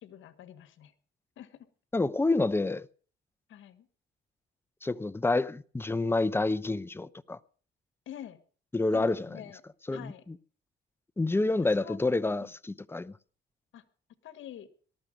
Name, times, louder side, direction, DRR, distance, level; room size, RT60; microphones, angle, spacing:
voice 1, 0.0-0.9 1.4-1.7 3.5-3.9 8.0-8.4 8.9-9.6 9.9-10.2 11.8-12.0 12.4-12.5 13.7-13.8 14.2-14.7, left 10 dB, 80° left, 1.5 m, -46 dB
voice 2, 1.9-2.9 4.8-7.4 8.7-9.4 9.9-10.4 11.2-13.1, left 2 dB, 10° left, 0.7 m, -28 dB
18.5 x 13.0 x 5.2 m
cardioid pair, 90°, 20 cm